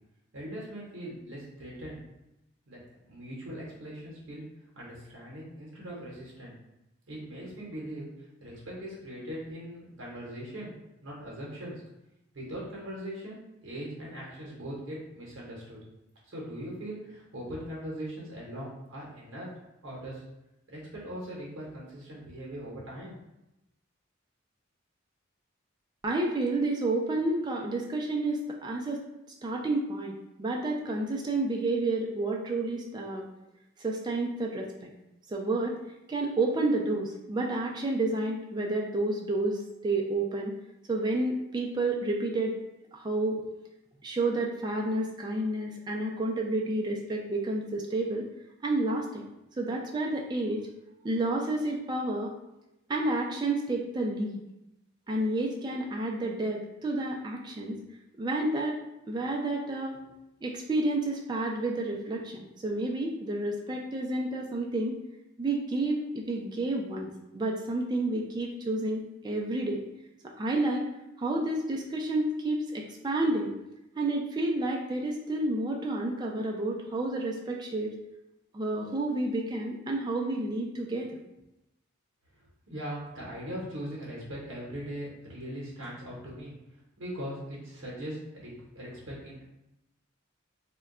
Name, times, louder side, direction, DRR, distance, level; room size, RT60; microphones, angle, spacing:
voice 1, 0.3-2.0 2.7-2.8 3.1-4.4 4.7-6.5 7.1-8.1 8.4-10.7 11.0-11.8 12.3-15.8 16.3-19.5 19.8-20.2 20.7-23.1 82.7-86.5 87.0-89.5, equal, 70° right, -5 dB, 0.7 m, -40 dB
voice 2, 26.0-29.0 29.4-33.3 33.8-34.7 35.3-35.8 36.1-40.6 40.9-42.6 42.9-43.4 44.0-48.2 48.6-49.2 49.6-50.7 51.0-52.3 52.9-54.4 55.1-57.8 58.2-58.8 59.1-60.0 60.4-65.0 65.4-69.8 70.2-70.9 71.2-73.5 74.0-77.9 78.5-81.2, right 2 dB, 20° right, 0 dB, 0.3 m, -30 dB
2.2 x 2.2 x 3.6 m, 0.90 s
head